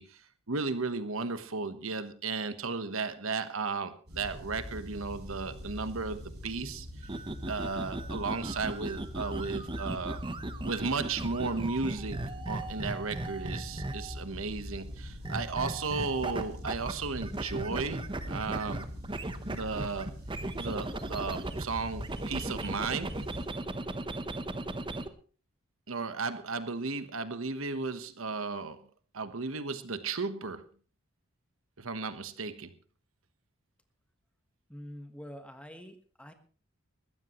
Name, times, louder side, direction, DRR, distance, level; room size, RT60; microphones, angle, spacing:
voice 1, 0.0-7.1 7.5-10.2 10.6-18.9 19.4-20.1 20.6-23.2 25.9-28.8 29.1-30.6 31.8-32.7, right 4 dB, 70° right, 11 dB, 1.2 m, -35 dB
sound 1, 4.1-23.4, left 1 dB, 50° right, 7.3 m, -43 dB
sound 2, 7.0-14.2 15.2-16.9 17.2-21.6 22.0-25.1, right 2 dB, 25° right, 0.9 m, -37 dB
voice 2, 34.7-36.3, equal, 5° left, 7 dB, 1.3 m, -46 dB
20.5 x 15.0 x 3.1 m, 0.40 s
head